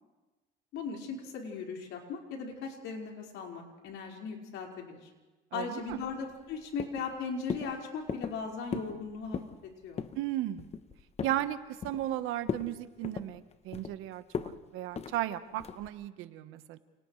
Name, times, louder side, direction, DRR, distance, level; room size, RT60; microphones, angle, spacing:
voice 1, 0.7-5.1 5.5-9.4 9.8-10.0, left 5 dB, 70° left, 0 dB, 4.9 m, -38 dB
voice 2, 5.5-6.0 10.2-10.7 11.2-16.8, right 13 dB, 80° right, 10 dB, 1.3 m, -35 dB
sound 1, 5.9-6.5 6.8-7.1 7.5-7.7 8.1-8.4 8.7-9.0 9.2-9.6 10.0-10.2 10.6-11.4 11.8-12.2 12.5-12.7 13.0-13.9 14.3-14.6 15.0-15.2 15.6-15.9, left 6 dB, 30° left, 0.9 m, -37 dB
30.0 x 29.5 x 3.3 m, 1.2 s
cardioid pair, 135°, 21 cm